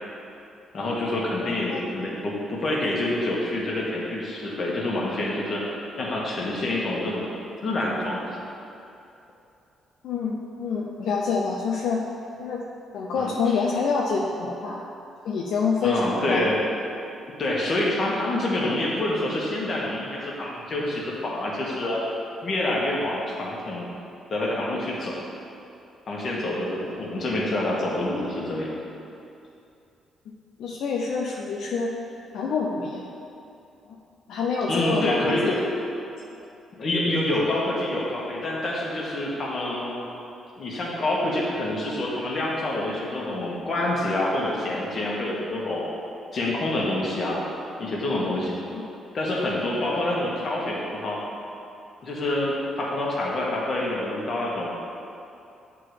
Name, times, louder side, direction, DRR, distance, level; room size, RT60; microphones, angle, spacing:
voice 1, 0.7-5.6 6.0-7.3 7.6-8.4 13.1-13.6 15.8-16.6 17.4-22.0 22.4-23.9 24.3-25.2 26.1-28.8 34.7-35.6 36.8-40.1 40.6-45.8 46.3-47.5 47.8-48.6 49.1-51.2 52.0-54.7, left 1 dB, 50° left, -4 dB, 1.4 m, -27 dB
voice 2, 1.5-1.8 10.0-12.0 12.4-12.6 12.9-14.8 15.2-16.4 30.6-31.9 32.3-33.0 34.3-35.6 48.7-48.8, left 5 dB, 75° left, -2 dB, 0.5 m, -27 dB
7.7 x 3.8 x 4.9 m, 2.7 s
cardioid pair, 90°, 0 cm